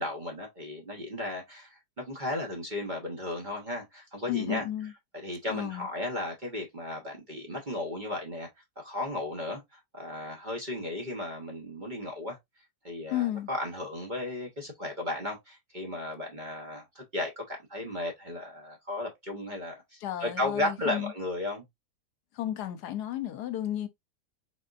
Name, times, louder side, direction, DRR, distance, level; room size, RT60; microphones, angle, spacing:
voice 1, 0.0-4.6 5.2-8.5 8.8-12.4 12.8-21.6, left 1 dB, 35° right, 0.9 m, -35 dB
voice 2, 4.3-4.9 5.5-5.9 13.1-13.5 20.0-21.1 22.3-23.9, left 12 dB, 75° left, 1.2 m, -33 dB
4.0 x 3.6 x 2.4 m
omnidirectional pair, 1.8 m